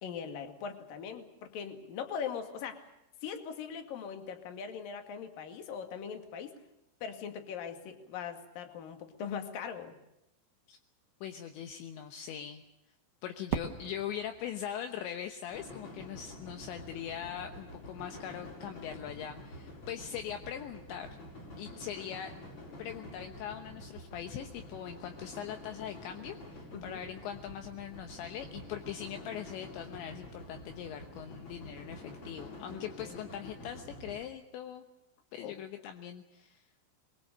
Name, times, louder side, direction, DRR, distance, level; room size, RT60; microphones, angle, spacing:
voice 1, 0.0-2.9 3.2-6.5 7.0-9.9 26.7-27.0 32.7-33.2 35.4-35.5, left 7 dB, 55° left, 6 dB, 3.5 m, -41 dB
voice 2, 11.2-12.6 13.2-21.2 21.6-22.3 22.8-34.9 35.3-36.6, left 9 dB, 75° left, 6 dB, 3.3 m, -41 dB
Fireworks, 13.5-16.4, right 8 dB, 65° right, 2.6 m, -41 dB
sound 1, 15.5-34.3, left 1 dB, 35° left, 7.1 m, -48 dB
24.5 x 22.5 x 6.8 m, 0.89 s
omnidirectional pair, 5.6 m